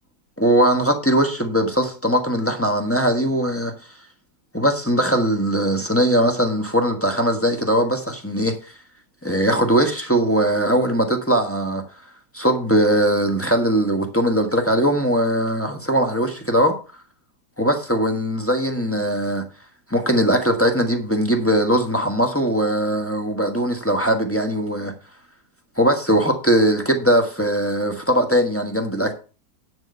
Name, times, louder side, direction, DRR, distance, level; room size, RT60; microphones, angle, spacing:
voice 1, 0.4-3.7 4.5-8.7 9.2-11.8 12.3-16.8 17.6-19.4 19.9-24.9 25.8-29.1, right 1 dB, 10° left, 1.1 m, -20 dB
9.5 x 4.4 x 6.6 m
omnidirectional pair, 2.0 m